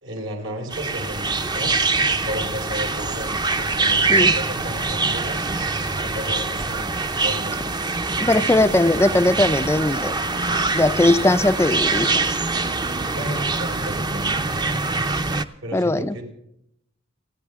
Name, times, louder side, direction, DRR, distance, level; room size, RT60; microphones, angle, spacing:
voice 1, 0.0-1.8 2.2-5.4 6.0-7.7 13.1-14.3 15.6-16.2, equal, 75° right, 1 dB, 4.6 m, -33 dB
sound 1, 0.7-15.4, right 3 dB, 20° right, 0.7 m, -24 dB
voice 2, 8.2-10.1 10.7-12.4 15.7-16.1, left 2 dB, 15° left, 11 dB, 0.4 m, -19 dB
30.0 x 10.0 x 3.6 m, 0.75 s
head